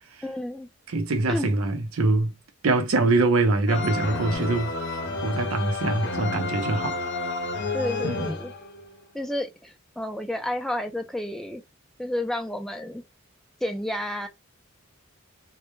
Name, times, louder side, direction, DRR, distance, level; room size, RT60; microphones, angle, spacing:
voice 1, 0.2-0.7 1.3-1.5 7.7-8.5 9.1-11.6 12.0-13.0 13.6-14.3, left 1 dB, ahead, 0.4 m, -30 dB
voice 2, 0.9-2.3 2.6-4.8 5.2-7.0 8.0-8.3, right 2 dB, 90° right, 0.6 m, -24 dB
sound 1, 3.7-8.9, left 3 dB, 55° left, 0.7 m, -30 dB
2.1 x 2.1 x 3.0 m
head